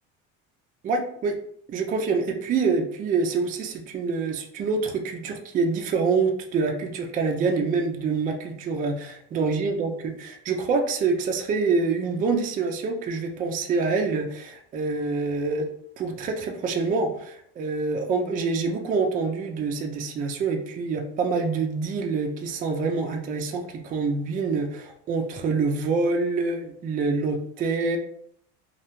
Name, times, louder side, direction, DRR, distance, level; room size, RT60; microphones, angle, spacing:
voice 1, 0.8-1.4 1.7-15.7 16.0-28.0, right 4 dB, 25° right, 3 dB, 0.3 m, -26 dB
2.3 x 2.1 x 3.0 m, 0.67 s
supercardioid pair, 115°, 34 cm